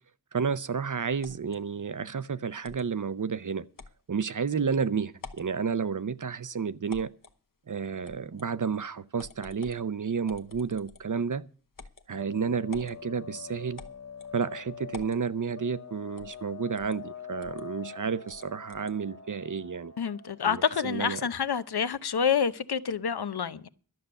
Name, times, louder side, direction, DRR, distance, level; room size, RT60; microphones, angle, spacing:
voice 1, 0.3-3.6 4.1-7.1 7.7-11.4 12.1-13.8 14.3-19.9 20.4-21.2, right 6 dB, 55° right, 0.7 m, -31 dB
sound 1, 1.2-1.6 2.6-2.9 3.8-4.0 4.5-4.6 5.1-5.5 6.9-7.4 8.0-8.5 9.2-9.8 10.3-11.1 11.7-12.1 12.7-13.0 13.8-14.3 14.9-15.2 16.2-16.4 16.8-17.0 17.4-17.6 18.3-19.0, left 4 dB, 60° left, 1.1 m, -48 dB
sound 2, 12.1-21.4, left 6 dB, 40° left, 0.8 m, -45 dB
voice 2, 20.0-23.7, left 7 dB, 80° left, 0.8 m, -28 dB
12.0 x 6.8 x 8.9 m
wide cardioid pair, 75°, 38 cm